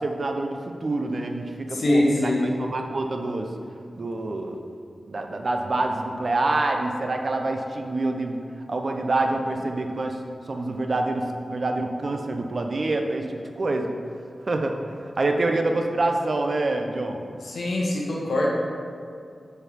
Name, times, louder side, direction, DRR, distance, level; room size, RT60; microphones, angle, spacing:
voice 1, 0.0-3.5 3.9-4.6 5.1-8.4 8.7-10.2 10.5-13.9 14.5-17.2, right 2 dB, 50° right, 4 dB, 0.6 m, -26 dB
voice 2, 1.7-2.4 17.4-18.5, left 1 dB, 90° left, -3 dB, 1.2 m, -23 dB
6.8 x 4.5 x 5.1 m, 2.4 s
wide cardioid pair, 105°, 0 cm